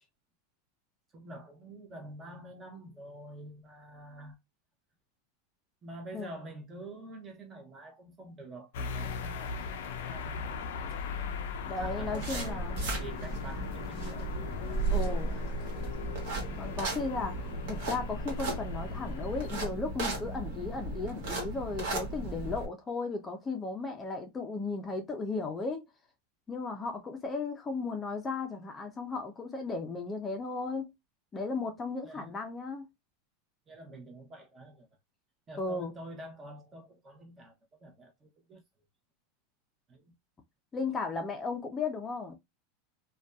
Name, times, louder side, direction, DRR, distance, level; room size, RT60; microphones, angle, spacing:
voice 1, 1.1-4.4 5.8-9.6 10.1-10.4 11.8-15.6 32.0-32.4 33.7-34.9 35.5-38.6 39.9-40.1, right 1 dB, 25° right, 0.8 m, -47 dB
sound 1, 8.7-19.6, left 5 dB, 75° left, 0.4 m, -39 dB
voice 2, 11.7-12.8 14.9-15.4 16.6-25.8 26.5-30.9 31.3-32.9 35.6-35.9 40.7-42.3, left 3 dB, 20° left, 0.5 m, -35 dB
sound 2, 11.8-22.7, right 2 dB, 65° right, 1.2 m, -35 dB
2.5 x 2.2 x 2.2 m
supercardioid pair, 135°, 0 cm